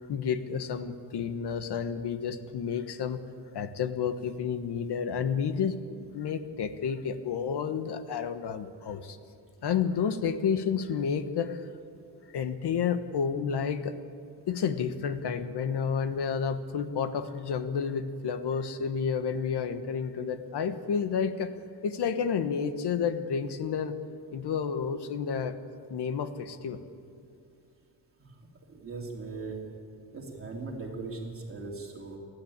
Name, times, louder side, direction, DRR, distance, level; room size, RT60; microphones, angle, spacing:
voice 1, 0.1-3.2 3.5-9.2 9.6-11.6 12.3-14.0 14.5-21.5 21.8-23.9 24.3-25.6 25.9-26.8, left 6 dB, 75° left, 10 dB, 1.3 m, -30 dB
voice 2, 28.7-29.6 30.1-32.2, right 3 dB, 35° right, -1 dB, 3.2 m, -39 dB
30.0 x 11.5 x 8.8 m, 2.5 s
wide cardioid pair, 160°, 40 cm